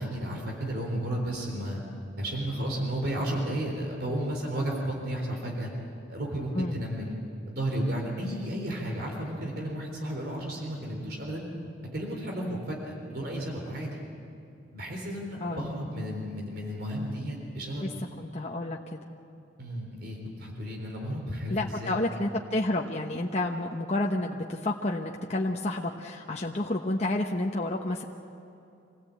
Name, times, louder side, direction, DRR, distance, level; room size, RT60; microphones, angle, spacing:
voice 1, 0.0-1.8 2.2-5.7 6.1-7.1 7.5-11.5 11.9-14.0 14.7-17.9 19.6-22.0, right 1 dB, 55° right, 0 dB, 3.9 m, -33 dB
voice 2, 18.2-19.0 21.5-28.0, left 1 dB, 35° left, 0 dB, 1.0 m, -30 dB
26.5 x 17.0 x 8.5 m, 2.7 s
head